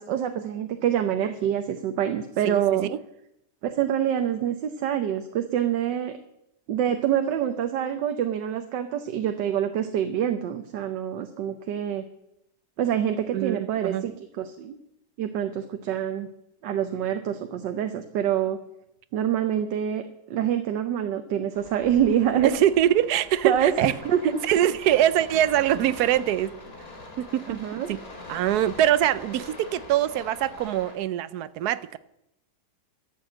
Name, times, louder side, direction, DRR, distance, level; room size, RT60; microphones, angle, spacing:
voice 1, 0.0-2.9 3.6-6.2 6.7-12.0 12.8-14.8 15.2-16.3 16.6-18.6 19.1-22.5 23.4-23.7 24.1-24.4 27.5-27.9, right 10 dB, 90° right, 1.5 m, -26 dB
voice 2, 2.4-3.0 13.3-14.0 22.4-23.9 24.4-26.6 27.2-27.6 27.9-28.0 28.3-32.0, right 12 dB, 70° right, 1.1 m, -23 dB
sound 1, 21.5-31.0, left 2 dB, 35° left, 2.4 m, -43 dB
13.0 x 7.8 x 7.5 m
omnidirectional pair, 1.9 m